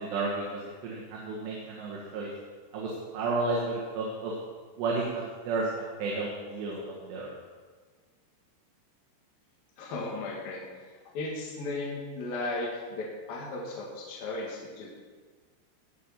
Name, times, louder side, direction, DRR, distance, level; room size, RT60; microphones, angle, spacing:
voice 1, 0.0-2.3 2.7-4.3 4.8-5.7 6.0-7.3, right 3 dB, 70° right, -4 dB, 3.7 m, -32 dB
voice 2, 9.8-10.6 11.1-14.9, left 2 dB, 60° left, -4 dB, 3.4 m, -35 dB
18.5 x 6.5 x 5.8 m, 1.5 s
omnidirectional pair, 5.4 m